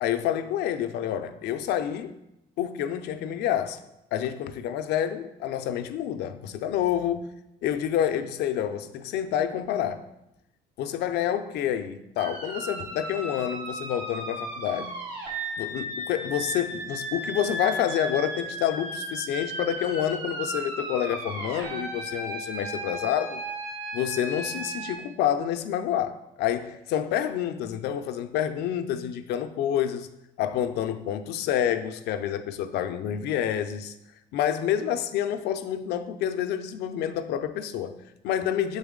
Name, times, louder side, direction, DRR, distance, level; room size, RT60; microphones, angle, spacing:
voice 1, 0.0-2.2 2.6-3.8 4.1-7.3 7.6-10.0 10.8-14.9 15.6-23.4 23.9-30.1 30.4-34.0 34.3-38.8, left 10 dB, 80° left, 0.5 m, -28 dB
sound 1, 12.2-24.9, right 1 dB, 75° right, 2.0 m, -35 dB
6.9 x 3.9 x 3.7 m
cardioid pair, 110°, 17 cm